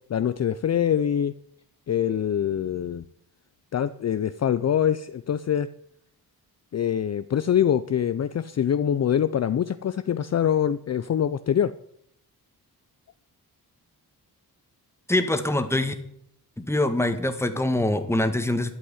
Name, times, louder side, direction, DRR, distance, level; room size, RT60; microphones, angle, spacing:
voice 1, 0.1-1.3 1.9-3.0 3.7-5.7 6.7-11.7, left 9 dB, 45° left, 12 dB, 0.5 m, -24 dB
voice 2, 15.1-15.9 16.6-18.8, left 1 dB, 5° left, 8 dB, 1.5 m, -24 dB
12.0 x 8.3 x 9.6 m, 0.71 s
wide cardioid pair, 140°, 39 cm